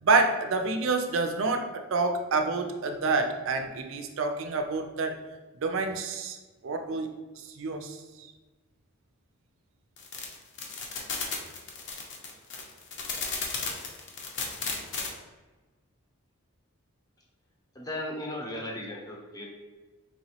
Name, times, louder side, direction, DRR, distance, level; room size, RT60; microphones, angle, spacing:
voice 1, 0.0-5.2 5.6-6.4 6.6-8.3, right 3 dB, 70° right, 6 dB, 0.4 m, -28 dB
sound 1, 10.0-15.1, left 4 dB, 55° left, 0.7 m, -34 dB
voice 2, 17.7-19.5, left 1 dB, 15° left, -1 dB, 0.7 m, -36 dB
4.2 x 3.0 x 2.8 m, 1.2 s
head